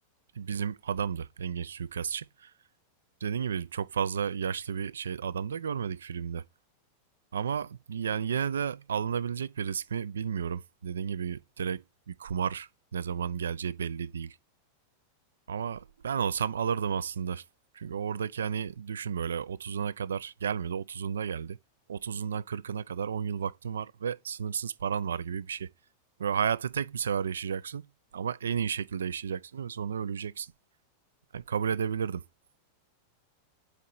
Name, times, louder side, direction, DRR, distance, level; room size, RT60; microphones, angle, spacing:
voice 1, 0.3-2.5 3.2-6.4 7.3-14.4 15.5-17.4 17.7-21.6 21.9-25.7 26.2-27.9 28.1-30.5 31.3-32.2, right 7 dB, 65° right, 0.3 m, -32 dB
8.1 x 4.5 x 4.0 m
figure-of-eight pair, 90°, 0 cm